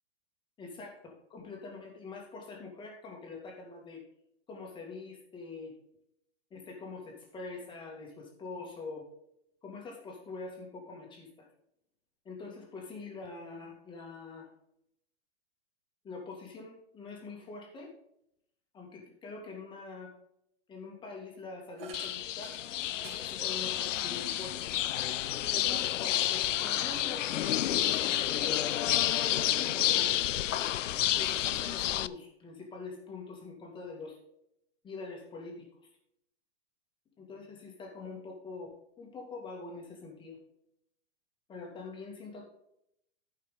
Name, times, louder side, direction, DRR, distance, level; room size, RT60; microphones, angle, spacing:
voice 1, 0.6-4.0 4.5-5.7 6.5-9.1 9.6-11.5 12.2-14.5 16.0-17.9 18.7-20.1 20.7-22.6 23.0-24.6 25.5-28.7 29.3-30.2 31.1-34.2 34.8-35.7 37.2-40.4 41.5-42.5, left 3 dB, 15° left, 0 dB, 2.2 m, -44 dB
sound 1, 21.8-25.7 26.1-27.3, right 4 dB, 50° right, 3.2 m, -54 dB
sound 2, 21.9-32.1, left 12 dB, 80° left, 0.6 m, -30 dB
14.0 x 5.7 x 3.8 m, 0.76 s
hypercardioid pair, 150°, 37 cm